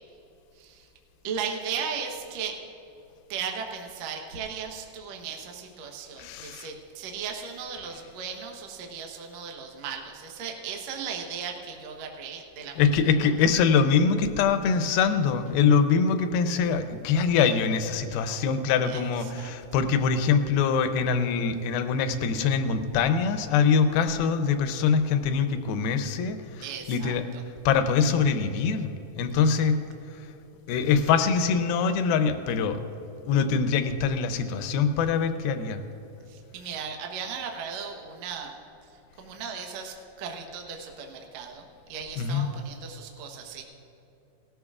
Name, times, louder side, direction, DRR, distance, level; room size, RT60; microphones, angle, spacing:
voice 1, 0.6-0.9 1.2-2.6 3.3-13.5 18.8-19.5 26.6-27.4 29.3-29.7 36.3-38.6 39.2-41.6 41.9-43.6, right 6 dB, 70° right, 2 dB, 1.6 m, -37 dB
voice 2, 6.2-6.7 12.8-26.4 26.9-27.2 27.7-28.9 29.2-29.8 30.7-32.8 33.3-35.8 42.2-42.5, left 6 dB, 80° left, 9 dB, 2.4 m, -23 dB
18.5 x 13.5 x 2.4 m, 2.9 s
omnidirectional pair, 4.6 m